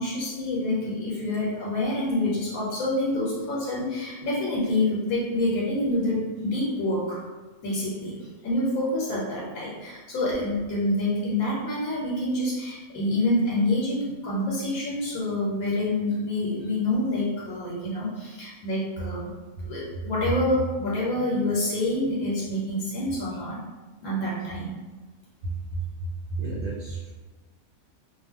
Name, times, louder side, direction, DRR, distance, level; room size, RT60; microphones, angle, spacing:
voice 1, 0.0-7.2 7.6-8.1 8.4-19.2 19.6-23.6 24.0-24.8, left 1 dB, 85° left, -6 dB, 1.1 m, -27 dB
voice 2, 25.4-25.8 26.3-27.1, right 3 dB, 60° right, -6 dB, 0.8 m, -32 dB
2.4 x 2.2 x 3.4 m, 1.2 s
omnidirectional pair, 1.4 m